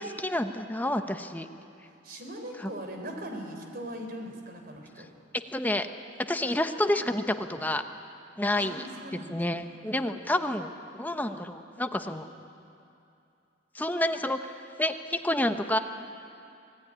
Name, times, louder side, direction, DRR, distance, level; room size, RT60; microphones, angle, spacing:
voice 1, 0.0-1.5 2.6-2.7 5.5-5.9 6.3-7.8 8.4-8.8 9.3-10.7 10.9-12.3 13.7-14.5 14.8-15.8, left 1 dB, 10° left, 7 dB, 0.9 m, -29 dB
voice 2, 2.0-5.1 8.5-9.4, right 1 dB, 50° right, 3 dB, 3.9 m, -40 dB
26.0 x 18.0 x 9.9 m, 2.6 s
head